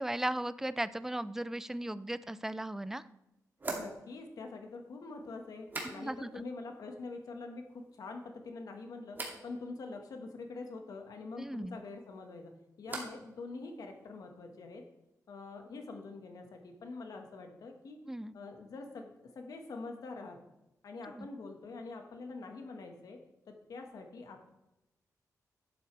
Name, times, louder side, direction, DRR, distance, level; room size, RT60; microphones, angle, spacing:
voice 1, 0.0-3.0 5.8-6.4 11.4-11.8 18.1-18.3 21.1-21.3, right 1 dB, 5° right, 15 dB, 0.4 m, -37 dB
sound 1, 2.3-2.4 3.6-6.4 6.7-7.3 7.6-8.3 9.1-9.5 11.9-13.3 13.6-14.2, right 2 dB, 30° right, 2.4 m, -45 dB
voice 2, 3.7-14.8 15.3-18.0 18.3-20.4 20.8-23.2 23.5-24.5, left 3 dB, 75° left, 4 dB, 1.6 m, -45 dB
11.0 x 7.9 x 3.4 m, 0.95 s
wide cardioid pair, 120°, 6 cm